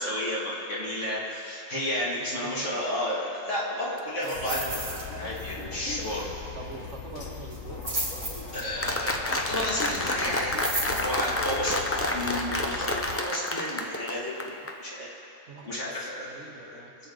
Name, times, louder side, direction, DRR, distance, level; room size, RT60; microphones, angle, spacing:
voice 1, 0.0-6.3 8.5-15.1 15.6-16.8, left 1 dB, 65° left, -6 dB, 2.5 m, -32 dB
voice 2, 2.2-2.8 4.2-4.8 6.5-7.9 15.5-16.0 16.2-16.9, right 4 dB, 65° right, 1 dB, 1.4 m, -43 dB
sound 1, 4.2-5.1 5.4-5.6 5.9-6.0 7.5-9.0 10.3-11.6 12.1-12.2, right 2 dB, 85° right, 2.4 m, -34 dB
sound 2, 4.3-13.2, left 4 dB, 90° left, 1.6 m, -40 dB
Applause, 8.8-14.7, left 1 dB, 15° left, 0.5 m, -29 dB
22.5 x 7.6 x 3.9 m, 3.0 s
omnidirectional pair, 1.3 m